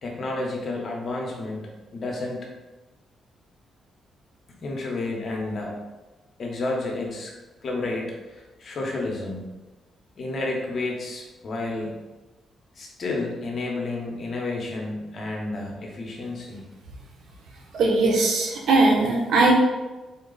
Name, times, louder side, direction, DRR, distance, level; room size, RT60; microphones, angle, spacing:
voice 1, 0.0-2.5 4.6-5.8 6.4-7.3 7.6-9.4 10.2-12.0 12.8-16.6, left 2 dB, 50° left, -1 dB, 0.9 m, -31 dB
voice 2, 17.7-19.6, right 2 dB, 75° right, -1 dB, 0.8 m, -19 dB
3.8 x 2.3 x 3.9 m, 1.1 s
cardioid pair, 90°, 0 cm